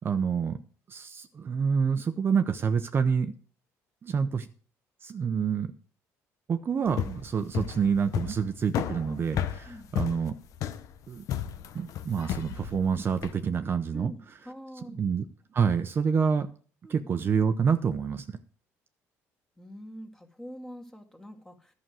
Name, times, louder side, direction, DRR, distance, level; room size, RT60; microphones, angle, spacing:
voice 1, 0.0-0.6 0.9-3.3 4.0-4.5 5.0-5.7 6.5-10.3 11.1-11.2 11.7-14.1 15.0-15.2 15.5-16.5 16.9-18.3, right 6 dB, 40° right, 9 dB, 0.8 m, -27 dB
sound 1, 6.9-13.4, left 9 dB, 65° left, 1.0 m, -33 dB
voice 2, 13.9-15.0 16.8-17.0 19.6-21.7, equal, 10° left, 3 dB, 1.9 m, -45 dB
11.5 x 6.3 x 7.6 m, 0.42 s
cardioid pair, 110°, 6 cm